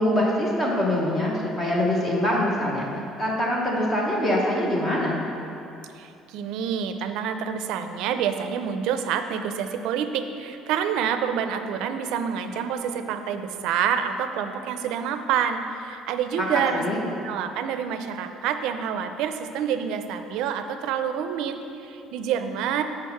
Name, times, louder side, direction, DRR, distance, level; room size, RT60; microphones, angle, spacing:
voice 1, 0.0-2.9 3.2-5.2 16.4-16.5 16.7-17.0, left 1 dB, 15° left, -3 dB, 0.9 m, -24 dB
voice 2, 5.9-16.8 17.2-22.8, right 8 dB, 70° right, 8 dB, 0.4 m, -27 dB
6.4 x 4.9 x 5.6 m, 2.7 s
cardioid pair, 175°, 0 cm